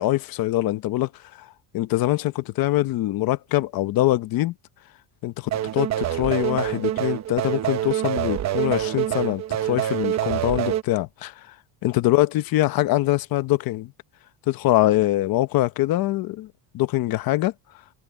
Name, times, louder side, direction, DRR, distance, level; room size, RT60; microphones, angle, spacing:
voice 1, 0.0-1.5 1.7-4.5 5.2-11.5 11.8-13.9 14.5-16.5 16.7-17.5, left 16 dB, 45° left, 0.8 m, -23 dB
sound 1, 5.5-10.8, right 11 dB, 35° right, 1.0 m, -26 dB
cardioid pair, 170°, 49 cm